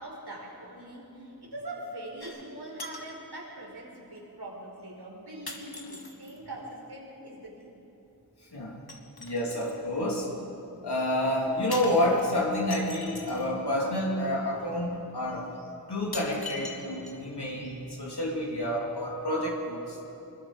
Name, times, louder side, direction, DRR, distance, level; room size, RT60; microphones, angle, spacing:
voice 1, 0.0-7.7, right 1 dB, 85° right, -3 dB, 5.1 m, -42 dB
sound 1, 2.2-2.5 2.8-3.2 4.2-4.3 5.5-6.4 8.9-9.8 11.7-13.5 14.6-14.7 15.3-15.4 16.1-17.4 17.7-17.8, left 3 dB, 70° left, 2.2 m, -42 dB
voice 2, 9.2-10.3 10.8-15.5 15.9-20.0, left 1 dB, 90° left, -4 dB, 3.2 m, -29 dB
26.0 x 21.0 x 5.1 m, 3.0 s
wide cardioid pair, 50°, 39 cm